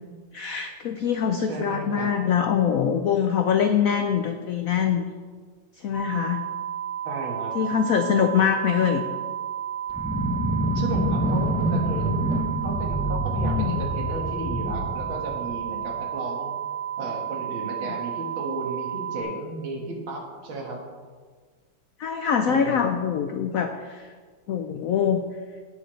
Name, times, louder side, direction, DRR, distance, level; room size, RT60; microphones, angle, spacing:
voice 1, 0.3-5.0 5.8-6.4 7.5-9.0 13.4-13.8 22.0-24.1 24.5-25.3, left 7 dB, 85° left, 6 dB, 0.7 m, -24 dB
voice 2, 1.5-2.1 7.0-7.6 10.7-12.2 12.6-16.6 17.0-20.8 22.5-22.8, right 2 dB, 85° right, 0 dB, 2.4 m, -34 dB
sound 1, 5.9-19.2, right 10 dB, 40° left, 1.3 m, -32 dB
sound 2, 9.9-15.9, right 1 dB, 5° right, 0.5 m, -27 dB
18.0 x 6.6 x 3.2 m, 1.5 s
omnidirectional pair, 2.1 m